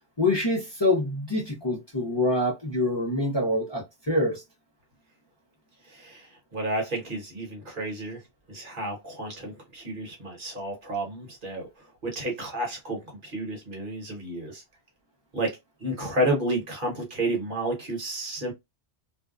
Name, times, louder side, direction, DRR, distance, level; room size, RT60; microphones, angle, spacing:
voice 1, 0.2-4.4, left 2 dB, 30° left, 0.7 m, -25 dB
voice 2, 5.8-8.2 8.5-14.6 15.3-18.5, right 1 dB, 50° right, 1.1 m, -31 dB
2.6 x 2.2 x 2.3 m
omnidirectional pair, 1.1 m